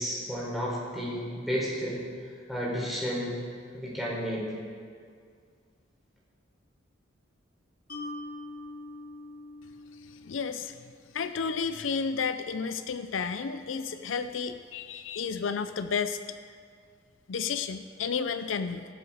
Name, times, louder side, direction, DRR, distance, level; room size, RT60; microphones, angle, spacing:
voice 1, 0.0-2.0 2.5-3.4 3.7-4.5, equal, ahead, -6 dB, 4.1 m, -32 dB
Mallet percussion, 7.9-11.2, left 2 dB, 50° left, 2.8 m, -43 dB
voice 2, 10.3-10.8 11.1-16.2 17.3-18.9, left 5 dB, 75° left, 10 dB, 0.5 m, -32 dB
22.5 x 7.8 x 4.9 m, 2.1 s
head